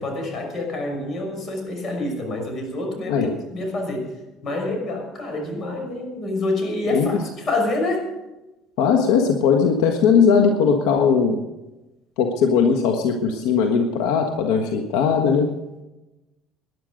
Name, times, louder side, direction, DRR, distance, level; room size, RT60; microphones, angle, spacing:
voice 1, 0.0-4.1 4.4-8.1, left 2 dB, 45° left, 3 dB, 6.0 m, -27 dB
voice 2, 8.8-11.4 12.2-15.5, left 6 dB, 85° left, 4 dB, 1.4 m, -19 dB
19.0 x 11.0 x 5.2 m, 1.0 s
supercardioid pair, 100°, 0 cm